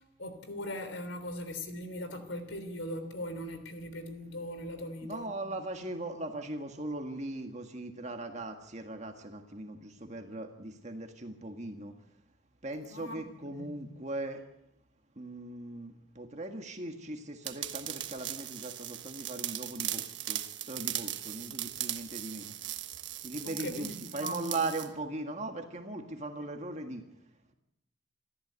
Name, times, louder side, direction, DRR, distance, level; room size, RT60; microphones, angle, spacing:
voice 1, 0.2-5.4 12.9-13.2 13.6-13.7 23.4-24.6, left 1 dB, 75° left, 3.4 m, -40 dB
voice 2, 5.0-12.0 12.6-14.4 15.2-22.5 23.2-27.0, right 2 dB, 35° right, 1.8 m, -39 dB
sound 1, 17.4-24.9, right 13 dB, 65° right, 1.3 m, -38 dB
27.5 x 14.0 x 8.3 m
head